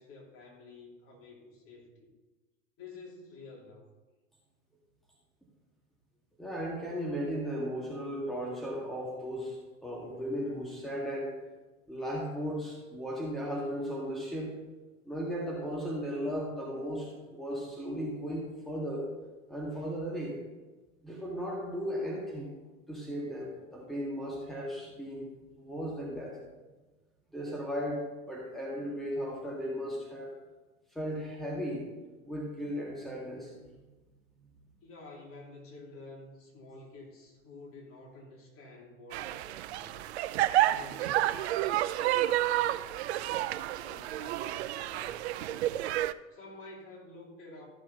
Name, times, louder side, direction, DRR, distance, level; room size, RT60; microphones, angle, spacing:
voice 1, 0.0-2.1 2.8-3.8 34.8-40.0 40.5-45.8 46.3-47.7, left 2 dB, 35° left, -2 dB, 2.9 m, -50 dB
voice 2, 6.4-11.3 11.9-14.6 15.1-19.1 19.5-20.4 21.0-22.6 22.9-25.3 25.6-26.4 27.3-30.3 30.9-31.9 32.2-33.6, equal, ahead, -3 dB, 2.0 m, -36 dB
sound 1, 39.1-46.1, right 14 dB, 55° right, 0.5 m, -30 dB
14.0 x 6.4 x 4.1 m, 1.2 s
figure-of-eight pair, 85°, 40 cm